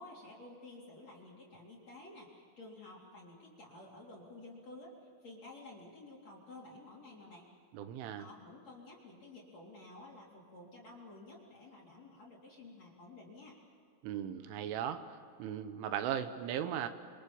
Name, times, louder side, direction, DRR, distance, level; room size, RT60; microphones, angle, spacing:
voice 1, 0.0-7.5 8.2-13.6, left 2 dB, 35° left, -2 dB, 3.9 m, -52 dB
voice 2, 7.7-8.3 14.0-15.1 15.4-16.9, right 9 dB, 80° right, 10 dB, 3.5 m, -37 dB
29.5 x 25.0 x 7.2 m, 2.4 s
omnidirectional pair, 5.7 m